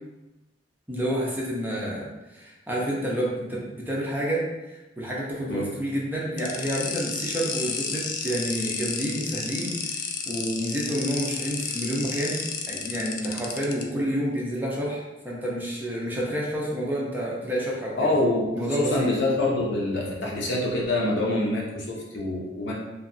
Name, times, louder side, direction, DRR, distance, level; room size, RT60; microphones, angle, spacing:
voice 1, 0.9-9.9 10.2-18.1 18.5-19.1, equal, 10° right, -5 dB, 0.6 m, -29 dB
sound 1, 6.4-13.8, left 5 dB, 45° left, 0.3 m, -32 dB
voice 2, 18.0-18.5 18.8-22.7, left 2 dB, 65° left, -3 dB, 0.7 m, -25 dB
2.9 x 2.6 x 2.6 m, 1.0 s
head